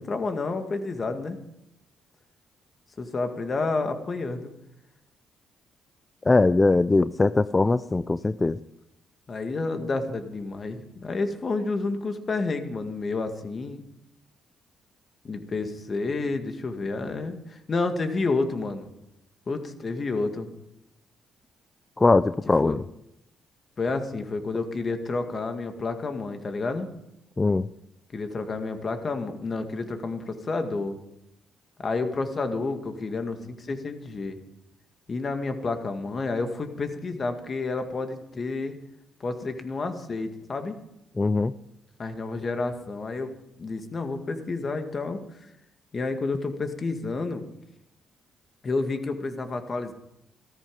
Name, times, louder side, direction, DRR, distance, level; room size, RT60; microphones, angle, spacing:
voice 1, 0.0-1.4 3.0-4.5 9.3-13.8 15.2-18.9 19.5-20.5 22.6-22.7 23.8-26.9 28.1-31.0 31.8-34.4 35.1-38.8 39.2-40.8 42.0-43.3 43.6-45.2 45.9-47.4 48.6-49.9, left 3 dB, 40° left, 7 dB, 1.9 m, -30 dB
voice 2, 6.3-8.6 22.0-22.8 27.4-27.7 41.2-41.5, left 3 dB, 20° left, 15 dB, 0.4 m, -21 dB
14.5 x 13.5 x 5.4 m, 0.84 s
cardioid pair, 90°, 0 cm